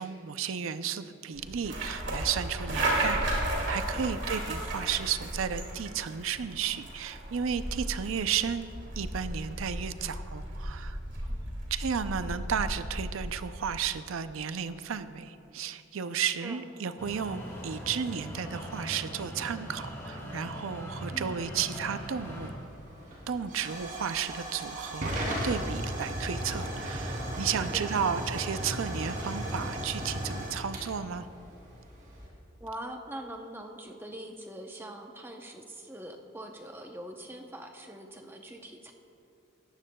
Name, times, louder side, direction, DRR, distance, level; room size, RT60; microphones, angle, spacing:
voice 1, 0.0-8.7 9.0-11.0 11.7-22.5 23.3-31.3, right 7 dB, 80° right, 11 dB, 0.5 m, -33 dB
sound 1, 1.4-13.6, right 1 dB, 60° right, 2.3 m, -34 dB
voice 2, 4.0-4.4 11.2-11.5 16.4-16.6 21.1-21.5 27.7-28.3 32.6-38.9, right 1 dB, 10° right, 3 dB, 0.7 m, -43 dB
sound 2, 17.0-22.5, equal, 15° left, 2.4 m, -41 dB
Hiss / Fire / Tick, 21.9-32.3, right 1 dB, 40° right, 2.9 m, -36 dB
17.5 x 14.0 x 2.3 m, 2.7 s
head